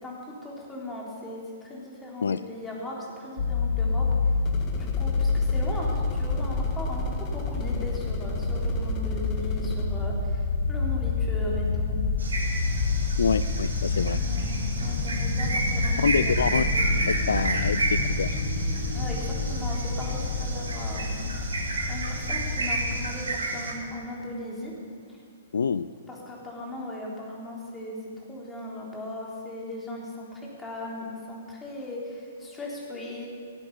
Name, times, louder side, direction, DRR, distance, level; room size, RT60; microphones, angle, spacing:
voice 1, 0.0-4.1 4.7-12.0 14.0-16.8 18.9-21.6 21.9-24.7 26.1-28.0 28.3-33.3, left 1 dB, 15° left, -3 dB, 3.5 m, -38 dB
sound 1, 3.4-23.1, left 3 dB, 55° left, 1.3 m, -28 dB
sound 2, 4.4-9.9, left 4 dB, 30° left, 1.5 m, -44 dB
sound 3, 12.2-23.7, right 2 dB, 75° right, 2.5 m, -31 dB
voice 2, 13.2-14.2 16.0-16.6 17.1-18.4 25.5-25.9, left 6 dB, 75° left, 15 dB, 0.3 m, -26 dB
17.5 x 9.0 x 7.0 m, 2.3 s
figure-of-eight pair, 115°, 0 cm